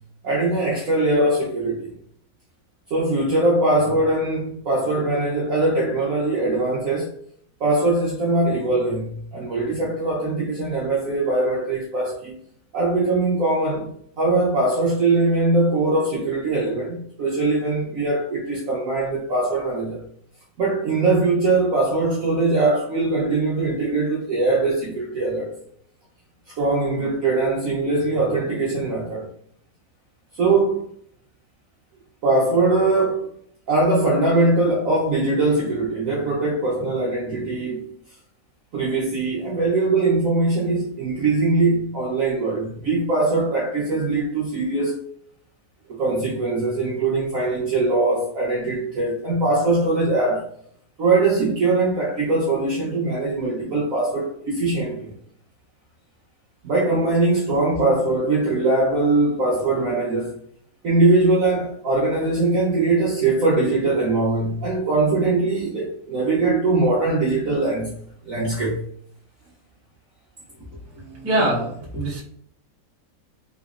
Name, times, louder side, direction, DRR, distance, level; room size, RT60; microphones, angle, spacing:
voice 1, 0.2-1.9 2.9-7.1 7.6-12.4 12.7-13.9 14.2-20.0 20.6-25.6 26.5-29.3 30.3-30.8 32.2-33.3 33.7-37.9 38.7-45.0 45.9-50.5 51.0-55.1 56.6-60.4 60.8-67.9 68.2-68.8, right 2 dB, 65° right, 0.8 m, -21 dB
voice 2, 70.9-72.2, right 1 dB, 15° right, 0.5 m, -24 dB
3.5 x 3.0 x 2.3 m
omnidirectional pair, 2.1 m